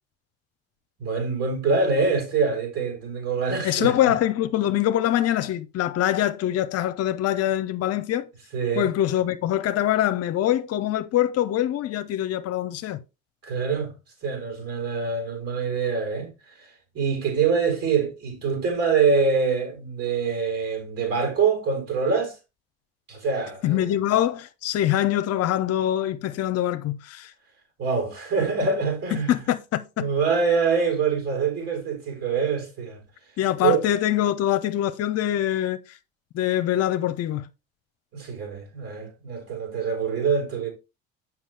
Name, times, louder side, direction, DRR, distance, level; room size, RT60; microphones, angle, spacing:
voice 1, 1.0-4.0 8.5-8.9 13.4-13.9 14.2-16.3 16.6-16.7 16.9-22.3 23.1-23.9 27.8-29.3 30.0-33.0 33.6-33.8 38.1-40.7, right 5 dB, 55° right, 4.0 m, -25 dB
voice 2, 3.6-8.3 8.8-13.0 23.6-27.3 29.1-30.1 33.4-35.8 36.3-37.5, left 12 dB, 55° left, 0.7 m, -24 dB
7.3 x 6.0 x 3.3 m
hypercardioid pair, 70°, 30 cm